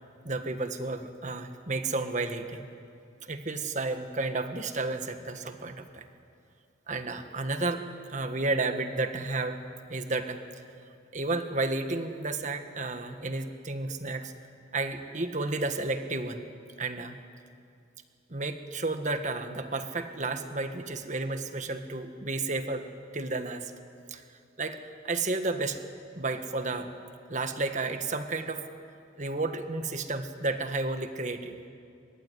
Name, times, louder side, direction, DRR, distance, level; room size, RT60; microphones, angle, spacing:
voice 1, 0.2-2.7 3.2-6.0 6.9-7.8 8.1-9.6 9.9-10.4 11.1-14.3 14.7-16.4 16.8-17.2 18.3-22.9 23.1-23.7 24.1-24.2 24.6-24.8 25.0-25.8 26.1-26.9 27.3-28.7 29.2-31.6, right 3 dB, 40° right, 7 dB, 1.6 m, -32 dB
23.5 x 22.0 x 9.9 m, 2.4 s
head